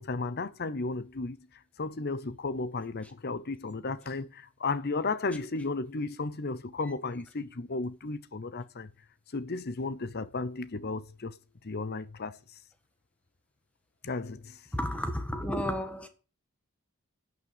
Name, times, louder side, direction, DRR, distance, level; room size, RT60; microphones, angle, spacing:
voice 1, 0.0-1.5 1.8-8.9 9.3-11.4 11.6-12.4 14.0-14.6, left 3 dB, 45° left, 0.8 m, -34 dB
voice 2, 14.7-16.1, equal, 5° left, 1.5 m, -32 dB
11.0 x 6.4 x 6.9 m
head